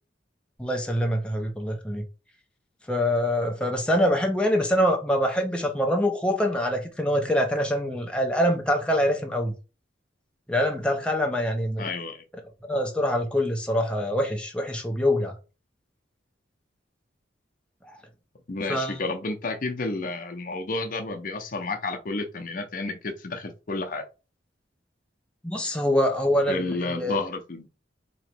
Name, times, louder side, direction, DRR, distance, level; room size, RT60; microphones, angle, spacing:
voice 1, 0.6-2.0 2.9-9.5 10.5-11.9 12.7-15.3 17.9-18.0 18.7-19.0 25.4-27.2, equal, 5° left, 0.5 m, -25 dB
voice 2, 11.8-12.2 18.5-24.1 26.5-27.7, left 3 dB, 50° left, 0.7 m, -31 dB
3.1 x 2.9 x 4.4 m
head